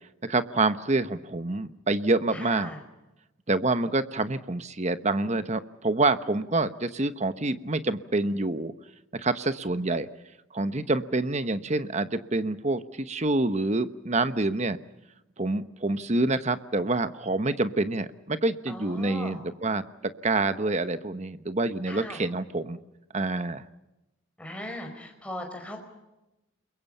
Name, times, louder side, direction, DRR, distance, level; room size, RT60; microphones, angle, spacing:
voice 1, 0.2-2.7 3.5-8.7 9.1-10.1 10.5-14.8 15.4-19.8 20.2-22.8 23.1-23.7, right 2 dB, 35° right, 11 dB, 1.0 m, -27 dB
voice 2, 2.3-2.8 18.7-19.4 21.9-22.2 24.4-25.8, left 1 dB, 5° left, 3 dB, 4.8 m, -38 dB
29.5 x 22.5 x 5.5 m, 0.97 s
head